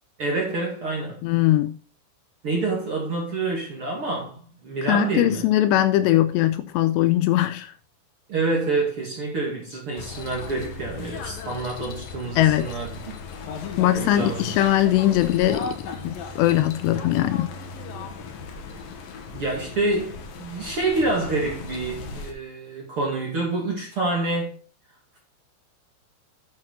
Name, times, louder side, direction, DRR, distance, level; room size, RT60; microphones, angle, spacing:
voice 1, 0.2-1.2 2.4-5.4 8.3-13.0 13.9-14.5 19.3-24.5, right 3 dB, 40° right, 2.2 m, -27 dB
voice 2, 1.2-1.8 4.8-7.7 12.4-12.8 13.8-17.5, left 13 dB, 80° left, 2.7 m, -21 dB
sound 1, 10.0-22.3, left 4 dB, 65° left, 2.8 m, -37 dB
9.4 x 8.3 x 3.9 m
omnidirectional pair, 5.2 m